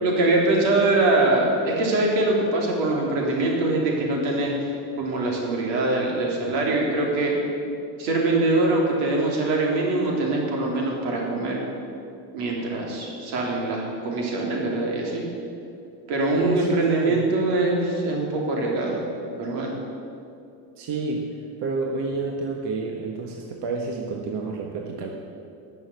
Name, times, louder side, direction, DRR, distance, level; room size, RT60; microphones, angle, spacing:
voice 1, 0.0-4.7 5.0-7.4 8.0-11.7 12.3-15.2 16.1-19.0 19.4-19.8, right 2 dB, 85° right, -1 dB, 3.6 m, -23 dB
voice 2, 16.3-17.2 20.8-21.3 21.6-25.1, right 4 dB, 55° right, 1 dB, 1.5 m, -29 dB
13.0 x 6.9 x 9.6 m, 2.6 s
supercardioid pair, 100°, 50 cm